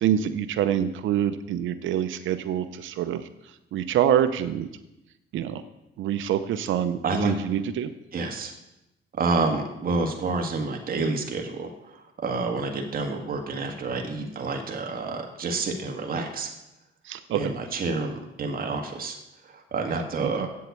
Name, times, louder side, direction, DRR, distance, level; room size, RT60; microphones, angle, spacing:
voice 1, 0.0-3.2 3.7-4.7 5.3-5.6 6.0-7.9 17.1-17.4 20.2-20.3, right 10 dB, 75° right, 9 dB, 0.7 m, -25 dB
voice 2, 7.0-7.3 8.1-8.5 9.2-16.5 17.3-19.1 19.4-20.5, right 3 dB, 45° right, 2 dB, 1.7 m, -28 dB
8.1 x 7.7 x 8.3 m, 0.91 s
cardioid pair, 90°, 20 cm